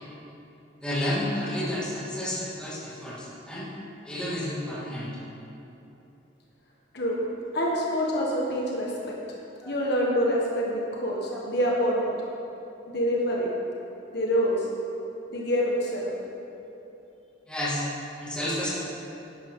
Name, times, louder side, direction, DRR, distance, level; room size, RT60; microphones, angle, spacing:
voice 1, 0.8-3.7 4.0-5.1 9.6-9.7 11.3-11.4 17.5-17.8 18.2-18.7, left 1 dB, 5° left, -8 dB, 2.4 m, -31 dB
voice 2, 7.5-8.9 9.6-12.1 12.9-13.5 14.1-14.7 15.3-16.1, equal, 60° left, -3 dB, 1.6 m, -26 dB
11.5 x 11.0 x 3.8 m, 2.9 s
head